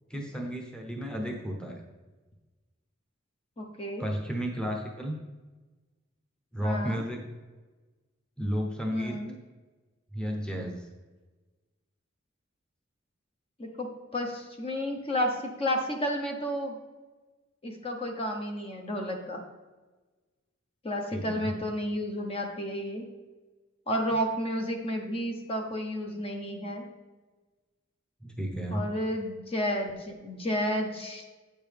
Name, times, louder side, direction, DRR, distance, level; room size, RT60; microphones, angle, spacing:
voice 1, 0.1-1.8 4.0-5.2 6.5-7.2 8.4-9.2 10.1-10.9 21.1-21.5 28.2-28.9, equal, 5° left, 0 dB, 0.9 m, -32 dB
voice 2, 3.6-4.0 6.6-7.0 8.9-9.4 13.6-13.9 14.1-16.8 17.6-19.4 20.8-23.1 23.9-26.9 28.7-31.3, equal, 30° left, 2 dB, 1.0 m, -31 dB
8.6 x 7.0 x 3.4 m, 1.2 s
head